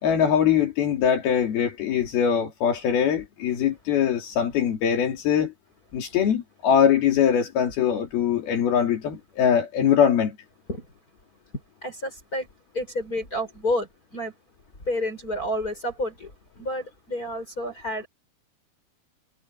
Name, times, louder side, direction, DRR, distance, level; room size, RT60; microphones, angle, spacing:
voice 1, 0.0-5.5 5.9-10.4, left 8 dB, 75° left, 4.5 m, -22 dB
voice 2, 11.8-12.5 12.7-14.3 14.9-18.1, left 1 dB, 20° left, 6.0 m, -30 dB
omnidirectional pair, 4.5 m